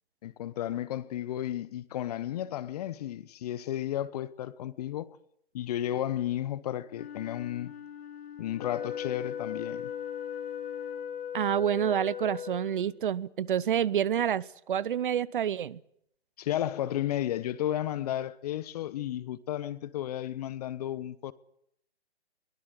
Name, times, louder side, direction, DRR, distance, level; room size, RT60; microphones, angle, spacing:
voice 1, 0.2-5.2 5.5-7.7 8.4-9.9 16.4-21.3, left 12 dB, 35° left, 1.1 m, -33 dB
Wind instrument woodwind instrument, 6.9-11.4, left 9 dB, 65° left, 3.0 m, -46 dB
Wind instrument woodwind instrument 2, 8.6-13.0, left 9 dB, 20° left, 1.8 m, -37 dB
voice 2, 11.3-15.8, right 9 dB, 50° right, 0.9 m, -28 dB
22.5 x 19.5 x 8.1 m
figure-of-eight pair, 135°, 32 cm